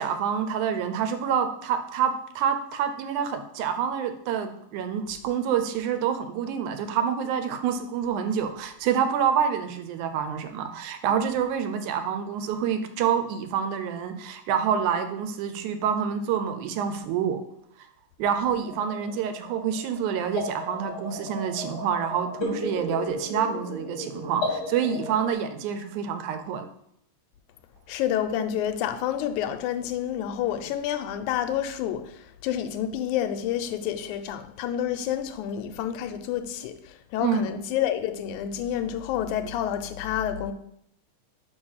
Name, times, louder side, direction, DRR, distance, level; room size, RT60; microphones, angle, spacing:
voice 1, 0.0-17.4 18.2-26.7 37.2-37.4, right 8 dB, 85° right, 2.1 m, -27 dB
sound 1, 18.6-25.3, left 2 dB, 35° left, 2.0 m, -35 dB
voice 2, 27.9-40.5, left 10 dB, 90° left, 2.0 m, -29 dB
5.2 x 4.7 x 5.5 m
omnidirectional pair, 3.4 m